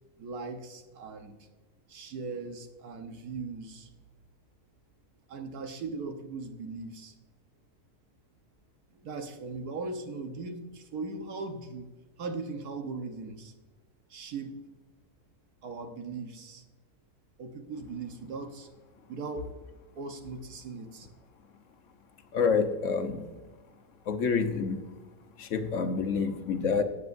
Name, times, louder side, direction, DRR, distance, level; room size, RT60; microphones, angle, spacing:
voice 1, 0.2-1.3 1.9-3.9 5.3-7.1 9.0-11.9 12.2-13.5 14.1-14.6 15.6-16.6 17.4-18.7 19.1-19.5 19.9-21.1, right 4 dB, 90° right, 6 dB, 1.6 m, -39 dB
voice 2, 22.3-23.3 24.1-24.8 25.4-26.8, left 5 dB, 60° left, 8 dB, 1.2 m, -27 dB
18.5 x 8.2 x 2.6 m, 1.3 s
omnidirectional pair, 1.6 m